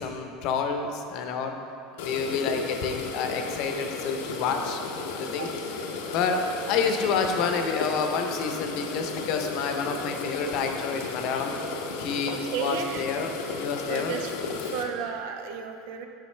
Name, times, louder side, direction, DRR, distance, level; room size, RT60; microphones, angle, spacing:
voice 1, 0.0-1.5 2.0-4.8 5.1-5.5 6.1-11.5 12.0-14.2, left 5 dB, 55° left, 5 dB, 0.7 m, -29 dB
sound 1, 2.0-14.8, left 4 dB, 90° left, 0.7 m, -34 dB
voice 2, 5.4-6.0 12.3-13.1 13.9-14.3 14.6-16.1, right 7 dB, 75° right, 5 dB, 0.6 m, -34 dB
8.2 x 5.9 x 3.3 m, 2.6 s
supercardioid pair, 140°, 0 cm